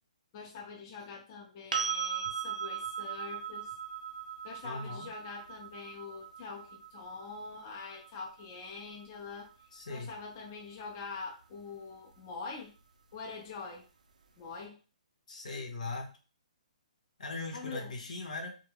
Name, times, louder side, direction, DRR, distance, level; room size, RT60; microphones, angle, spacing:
voice 1, 0.3-3.7 4.4-9.5 9.9-12.7 13.1-13.9 14.4-14.8 17.5-17.9, left 4 dB, 25° left, 0 dB, 0.4 m, -44 dB
sound 1, 1.7-9.5 12.4-12.5, right 7 dB, 80° right, 0.4 m, -39 dB
voice 2, 4.6-5.1 9.7-10.1 15.3-16.2 17.2-18.6, left 3 dB, 70° left, 3 dB, 0.8 m, -39 dB
2.2 x 2.1 x 3.3 m, 0.35 s
hypercardioid pair, 165°, 4 cm